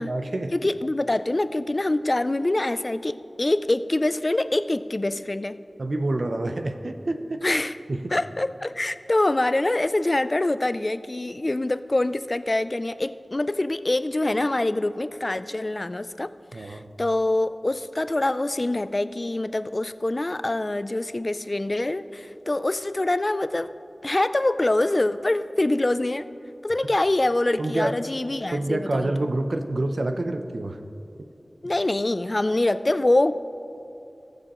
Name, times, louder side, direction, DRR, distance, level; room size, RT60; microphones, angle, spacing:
voice 1, 0.0-0.5 5.8-7.4 7.9-8.1 16.5-16.8 27.6-27.9 28.5-30.8, right 2 dB, 75° right, 7 dB, 0.6 m, -27 dB
voice 2, 0.5-5.6 7.4-7.8 8.1-23.7 24.0-26.3 26.6-29.3 31.6-33.3, left 2 dB, 45° left, 13 dB, 0.3 m, -25 dB
18.5 x 6.8 x 3.0 m, 2.6 s
wide cardioid pair, 45°, 0 cm